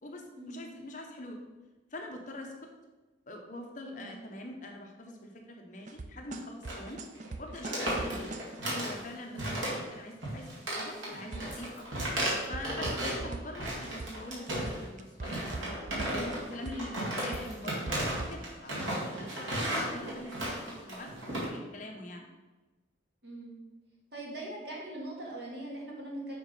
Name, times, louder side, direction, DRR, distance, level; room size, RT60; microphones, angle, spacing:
voice 1, 0.0-1.4 1.9-2.7 3.3-7.0 7.4-8.3 8.6-11.9 12.5-15.5 15.9-22.3, left 1 dB, 40° left, 2 dB, 0.8 m, -44 dB
sound 1, 5.9-8.6 11.3-11.7 12.0-13.7 14.0-14.3 14.7-16.3 16.7-17.0 17.3-18.4, right 3 dB, 40° right, 0.4 m, -41 dB
sound 2, 6.6-6.9 7.1-7.3 7.6-9.0 9.4-9.9 10.2-13.2 13.5-14.9 15.2-21.5, right 1 dB, 90° right, 2.2 m, -34 dB
voice 2, 23.2-23.5 24.1-26.4, right 1 dB, 60° right, -3 dB, 1.9 m, -41 dB
7.0 x 3.7 x 5.4 m, 1.2 s
head